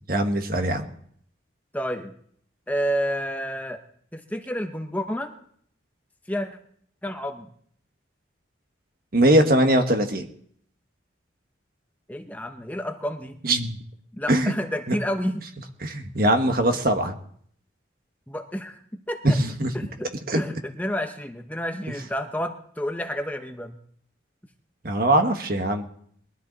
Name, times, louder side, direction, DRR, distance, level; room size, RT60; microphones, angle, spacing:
voice 1, 0.1-0.8 9.1-10.3 13.4-13.8 14.3-14.5 14.9-15.0 15.8-17.1 19.2-19.7 20.3-20.4 24.8-25.8, right 1 dB, 50° right, 6 dB, 1.4 m, -21 dB
voice 2, 1.7-2.1 2.7-3.8 4.1-5.3 6.3-6.5 7.0-7.5 12.1-13.4 14.1-15.5 18.3-19.4 19.7-20.1 20.3-23.8, equal, 10° left, 5 dB, 0.8 m, -30 dB
21.5 x 13.0 x 4.0 m, 0.63 s
head